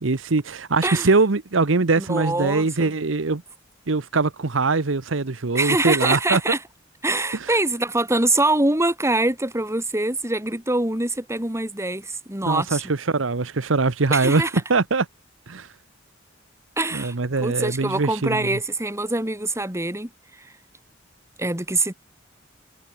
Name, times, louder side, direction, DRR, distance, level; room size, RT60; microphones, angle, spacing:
voice 1, 0.0-3.4 3.9-6.4 7.3-7.5 12.4-14.4 14.7-15.1 15.5-15.7 16.9-18.6, right 3 dB, 80° right, 1.0 m, -22 dB
voice 2, 2.0-2.9 5.5-6.6 7.0-12.8 14.1-14.5 16.8-20.1 21.4-21.9, right 2 dB, 15° right, 4.0 m, -24 dB
head